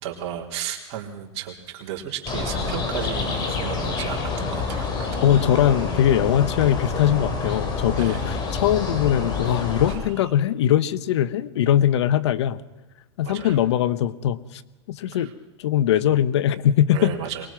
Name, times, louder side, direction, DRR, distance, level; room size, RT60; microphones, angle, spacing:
voice 1, 0.0-5.2 7.5-7.6 7.9-8.3 9.9-10.0 13.2-13.6 15.1-15.3 16.9-17.5, right 9 dB, 45° right, -1 dB, 3.8 m, -34 dB
sound 1, 2.3-10.0, left 4 dB, 30° left, 4.2 m, -27 dB
voice 2, 5.2-12.6 13.2-14.6 14.9-15.3 15.6-17.1, left 11 dB, 70° left, 17 dB, 1.0 m, -21 dB
23.5 x 21.0 x 6.0 m, 1.1 s
hypercardioid pair, 130°, 15 cm